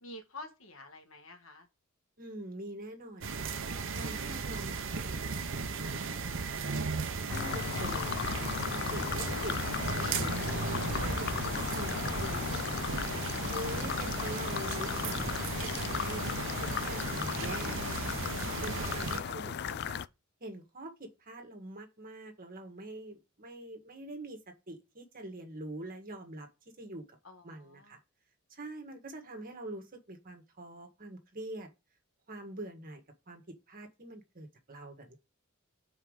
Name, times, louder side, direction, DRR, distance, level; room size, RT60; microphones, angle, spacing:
voice 1, 0.0-1.7 7.4-7.6 27.2-28.0, left 2 dB, 70° left, 1.5 m, -49 dB
voice 2, 2.2-3.5 4.0-6.9 7.2-8.6 8.9-10.6 11.0-13.0 13.5-16.2 16.6-18.2 18.6-20.0 20.4-24.4 24.7-26.5 26.8-27.2 27.4-28.0 28.5-31.7 32.3-33.0 33.3-33.4 33.7-35.2, right 1 dB, 45° right, 1.7 m, -44 dB
sound 1, 3.2-19.2, right 4 dB, 65° right, 0.9 m, -36 dB
sound 2, 7.3-20.1, left 8 dB, 50° left, 0.4 m, -36 dB
5.7 x 4.7 x 6.4 m
head